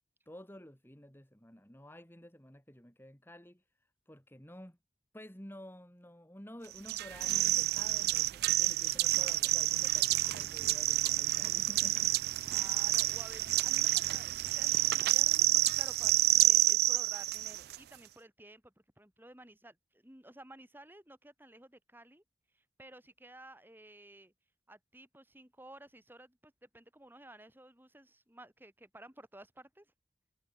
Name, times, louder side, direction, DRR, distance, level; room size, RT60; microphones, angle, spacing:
voice 1, 0.3-3.6 4.1-4.8 5.1-12.1, equal, 15° left, 3.7 m, -52 dB
sound 1, 6.9-17.8, right 16 dB, 60° right, 0.3 m, -29 dB
voice 2, 12.4-22.2 22.5-24.3 24.7-29.9, right 1 dB, 10° right, 6.5 m, -54 dB
head